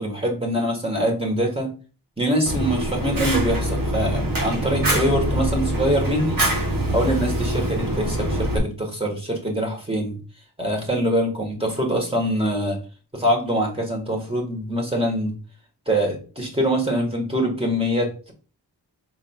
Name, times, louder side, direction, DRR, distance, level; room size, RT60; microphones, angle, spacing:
voice 1, 0.0-1.7 2.2-6.4 6.9-10.2 10.6-12.8 13.1-15.4 15.9-18.3, equal, 15° right, 0 dB, 1.6 m, -24 dB
Fire, 2.5-8.6, right 1 dB, 50° right, 1.0 m, -24 dB
5.8 x 3.6 x 2.4 m, 0.36 s
wide cardioid pair, 45°, 43 cm